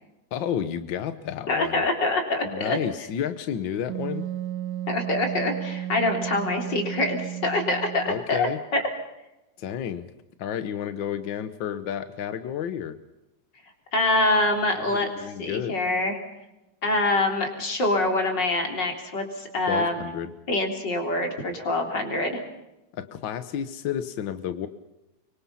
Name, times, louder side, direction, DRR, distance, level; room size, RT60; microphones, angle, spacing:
voice 1, 0.3-1.8 2.4-4.2 8.1-8.6 9.6-10.1 10.4-13.0 14.7-15.8 19.7-20.3 22.9-24.7, left 9 dB, 65° left, 11 dB, 1.1 m, -31 dB
voice 2, 1.5-2.8 4.9-8.8 13.9-15.1 15.4-16.2 16.8-20.0 20.5-22.4, left 2 dB, 35° left, 3 dB, 4.0 m, -25 dB
Wind instrument woodwind instrument, 3.9-8.3, right 11 dB, 85° right, 2.4 m, -33 dB
24.5 x 24.5 x 5.7 m, 0.96 s
omnidirectional pair, 3.4 m